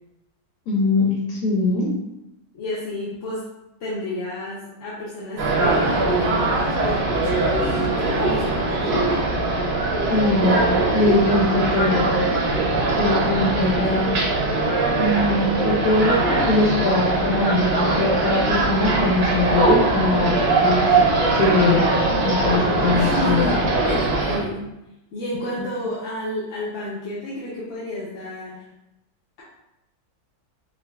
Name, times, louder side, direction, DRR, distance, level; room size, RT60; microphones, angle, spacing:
voice 1, 0.7-1.9 10.1-10.6 10.9-12.3 13.0-14.1 15.0-21.0 21.3-21.9 22.2-23.4 25.6-25.7, left 2 dB, 85° left, -3 dB, 1.1 m, -21 dB
voice 2, 2.5-3.5 3.8-9.2 13.5-14.3 22.9-23.6 23.8-24.6 25.1-28.6, left 1 dB, 60° left, -8 dB, 0.9 m, -31 dB
sound 1, 5.4-24.4, right 2 dB, 55° right, 0.7 m, -21 dB
4.6 x 2.2 x 2.3 m, 0.91 s
omnidirectional pair, 1.6 m